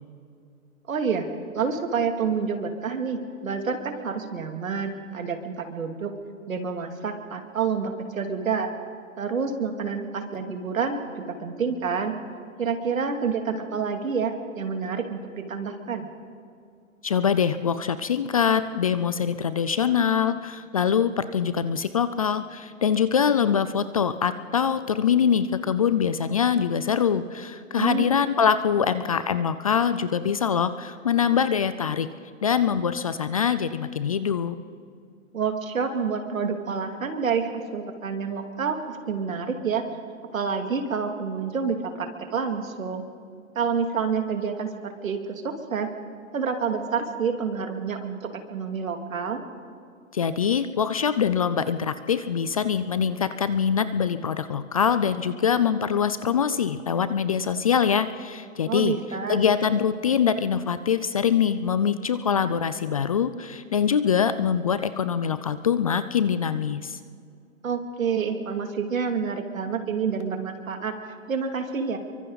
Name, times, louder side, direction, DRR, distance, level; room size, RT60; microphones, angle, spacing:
voice 1, 0.9-1.3 1.5-6.1 6.5-8.7 9.2-11.0 11.3-12.1 12.6-16.1 27.8-28.1 35.3-39.8 40.3-43.0 43.5-45.9 46.3-49.4 58.7-59.4 67.6-70.9 71.3-72.0, right 5 dB, 75° right, 5 dB, 2.7 m, -28 dB
voice 2, 17.0-32.1 32.4-34.6 50.1-58.9 59.3-67.0, left 7 dB, 30° left, 13 dB, 0.4 m, -24 dB
27.5 x 24.0 x 4.0 m, 2.3 s
hypercardioid pair, 140°, 40 cm